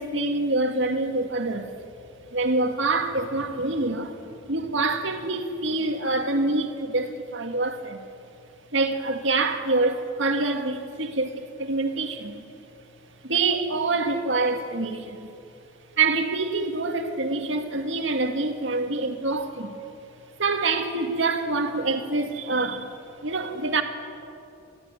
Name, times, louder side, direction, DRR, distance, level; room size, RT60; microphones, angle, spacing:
voice 1, 0.0-1.7 2.3-4.2 4.5-8.0 8.7-12.4 13.2-15.3 16.0-19.8 20.4-22.9 23.2-23.8, right 3 dB, 70° right, 1.9 m, -26 dB
28.0 x 14.5 x 9.5 m
head